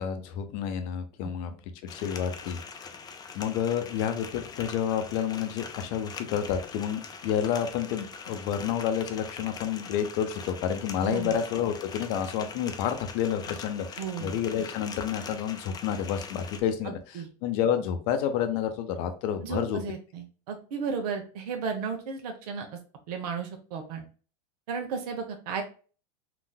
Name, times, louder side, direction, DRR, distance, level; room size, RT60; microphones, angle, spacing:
voice 1, 0.0-1.5 1.8-2.6 3.3-17.0 17.4-19.8, left 8 dB, 60° left, 8 dB, 0.7 m, -29 dB
sound 1, 1.9-16.6, left 5 dB, 20° left, 0.4 m, -43 dB
voice 2, 11.0-11.4 14.0-14.3 16.8-17.3 19.4-22.8 23.1-24.0 24.7-25.6, right 5 dB, 75° right, 4 dB, 0.8 m, -34 dB
3.9 x 2.5 x 2.2 m, 0.38 s
supercardioid pair, 115°, 20 cm